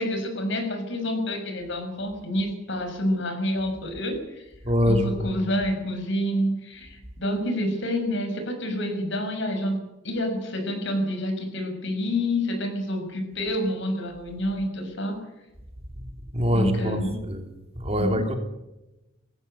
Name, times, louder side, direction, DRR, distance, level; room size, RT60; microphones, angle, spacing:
voice 1, 0.0-4.4 4.8-9.8 10.0-15.2 16.5-17.1 18.0-18.2, left 1 dB, 65° left, 6 dB, 6.1 m, -28 dB
voice 2, 4.7-5.3 16.3-17.0 17.3-17.5 17.8-18.4, equal, 30° right, 5 dB, 2.8 m, -23 dB
19.0 x 15.5 x 8.7 m, 0.97 s
head